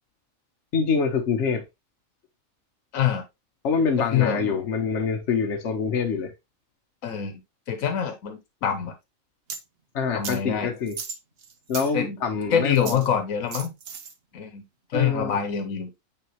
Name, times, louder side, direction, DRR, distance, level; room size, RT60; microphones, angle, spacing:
voice 1, 0.7-1.6 3.6-6.3 9.9-10.9 11.7-13.0 14.9-15.4, left 5 dB, 65° left, 1.3 m, -25 dB
voice 2, 2.9-3.3 4.0-4.6 7.0-7.4 7.7-8.9 10.1-10.7 11.9-12.2 12.5-13.7 14.3-14.6 14.9-15.9, left 8 dB, 90° left, 1.3 m, -25 dB
sound 1, 9.5-9.6 10.2-10.4 10.9-11.9 12.8-13.1 13.5-14.1, right 6 dB, 55° right, 1.0 m, -36 dB
8.9 x 3.5 x 3.0 m
omnidirectional pair, 1.4 m